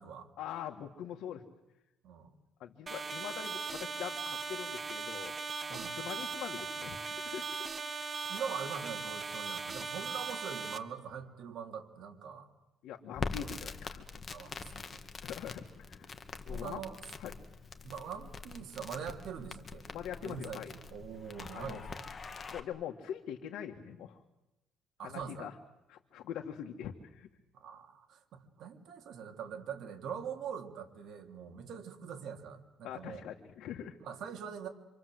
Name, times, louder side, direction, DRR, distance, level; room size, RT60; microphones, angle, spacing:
voice 1, 0.4-1.5 2.6-5.3 5.7-7.8 12.8-14.4 15.2-16.1 16.5-16.8 17.2-17.3 19.9-20.7 21.5-21.9 22.5-24.2 25.0-25.6 25.9-27.3 32.8-34.3, left 9 dB, 75° left, 3 dB, 1.8 m, -43 dB
sound 1, 2.9-10.8, right 4 dB, 25° right, 1.4 m, -39 dB
voice 2, 8.3-12.5 13.4-13.6 14.3-15.0 16.5-17.0 17.8-19.8 20.2-20.6 20.9-22.0 25.0-25.5 27.5-33.2 34.0-34.7, right 7 dB, 60° right, 4 dB, 3.6 m, -43 dB
Crackle, 13.1-22.6, left 4 dB, 30° left, 2.1 m, -44 dB
27.5 x 26.0 x 7.9 m, 0.97 s
cardioid pair, 145°, 0 cm